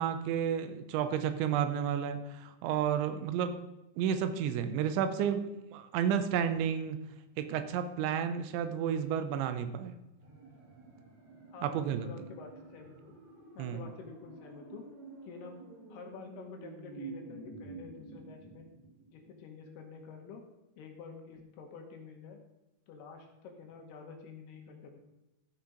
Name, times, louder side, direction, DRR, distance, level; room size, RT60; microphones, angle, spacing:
voice 1, 0.0-3.6 4.0-7.0 7.4-9.9 11.6-12.1 13.6-13.8, right 8 dB, 85° right, 9 dB, 3.0 m, -31 dB
sound 1, 10.2-19.3 19.6-19.7, right 3 dB, 45° right, 4.9 m, -49 dB
voice 2, 11.5-13.1 13.5-14.9 15.2-15.6 15.9-18.7 19.1-20.4 20.8-22.4 22.9-25.0, left 5 dB, 70° left, 2 dB, 2.8 m, -49 dB
13.0 x 5.8 x 5.0 m, 0.97 s
omnidirectional pair, 5.3 m